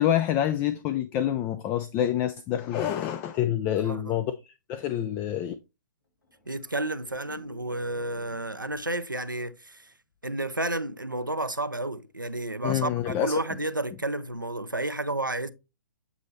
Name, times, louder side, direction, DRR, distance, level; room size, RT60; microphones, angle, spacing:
voice 1, 0.0-5.5 12.6-13.4, left 11 dB, 20° left, 0.3 m, -27 dB
voice 2, 3.8-4.2 6.5-9.9 10.2-15.5, right 2 dB, 90° right, 0.6 m, -31 dB
sound 1, 6.2-9.4 9.7-10.1, equal, 75° left, 2.3 m, -53 dB
8.2 x 4.1 x 3.0 m
figure-of-eight pair, 120°, 10 cm